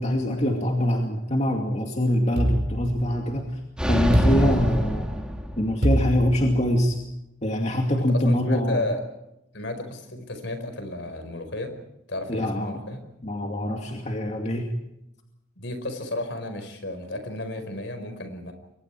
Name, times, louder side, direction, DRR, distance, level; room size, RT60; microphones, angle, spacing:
voice 1, 0.0-3.5 3.9-5.1 5.6-7.0 7.4-8.8 12.3-12.8 13.2-14.7, equal, 35° left, 2 dB, 2.5 m, -24 dB
sound 1, 2.4-3.5 4.1-5.2 5.8-6.9, equal, 55° right, 4.9 m, -26 dB
sound 2, 3.8-6.0, equal, 5° right, 2.3 m, -25 dB
voice 2, 8.0-9.0 9.5-11.7 12.1-13.0 15.6-18.5, left 2 dB, 65° left, 8 dB, 4.9 m, -33 dB
29.5 x 23.5 x 4.7 m, 0.87 s
head